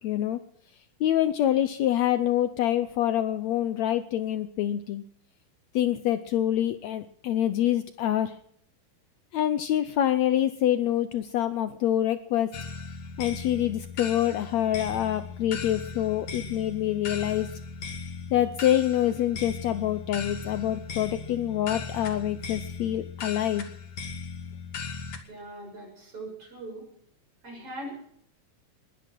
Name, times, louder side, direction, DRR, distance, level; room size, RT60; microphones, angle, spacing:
voice 1, 0.0-0.4 1.0-5.0 5.7-8.3 9.3-12.5 13.2-17.5 18.3-23.7, left 11 dB, 75° left, 12 dB, 1.7 m, -26 dB
sound 1, 12.5-25.2, left 5 dB, 50° left, 2.8 m, -38 dB
voice 2, 25.3-26.9 27.4-27.9, right 1 dB, 40° right, 0 dB, 7.9 m, -40 dB
21.0 x 11.0 x 6.1 m, 0.67 s
omnidirectional pair, 3.9 m